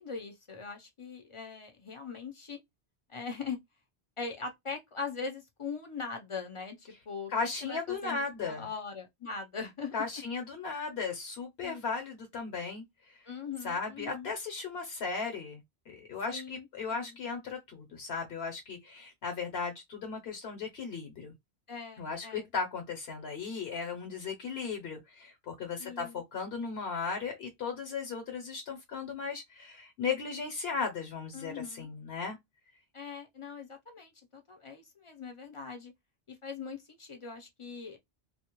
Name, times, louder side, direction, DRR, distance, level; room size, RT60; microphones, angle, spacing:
voice 1, 0.0-2.6 3.1-3.6 4.2-7.3 7.6-9.9 11.6-11.8 13.2-14.3 16.3-17.2 21.7-22.5 25.8-26.2 31.3-31.9 32.9-35.9 36.3-38.0, left 5 dB, 40° left, 0.4 m, -41 dB
voice 2, 7.3-8.7 9.9-13.2 13.6-21.3 22.0-32.4, left 5 dB, 75° left, 0.9 m, -36 dB
2.2 x 2.0 x 2.9 m
omnidirectional pair, 1.1 m